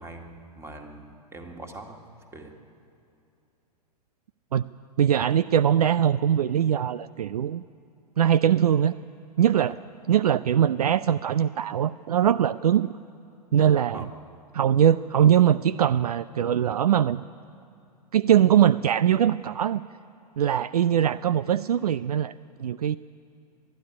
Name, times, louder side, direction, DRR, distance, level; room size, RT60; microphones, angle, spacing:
voice 1, 0.0-2.0 2.3-2.5 9.7-9.8 13.9-14.1, right 2 dB, 10° right, 3 dB, 2.1 m, -42 dB
voice 2, 5.0-7.6 8.2-9.0 9.4-9.8 10.1-12.9 13.5-14.1 14.5-17.3 18.1-19.8 20.4-22.3 22.6-23.0, right 9 dB, 65° right, 17 dB, 0.5 m, -21 dB
21.0 x 13.0 x 9.7 m, 2.6 s
figure-of-eight pair, 105°, 21 cm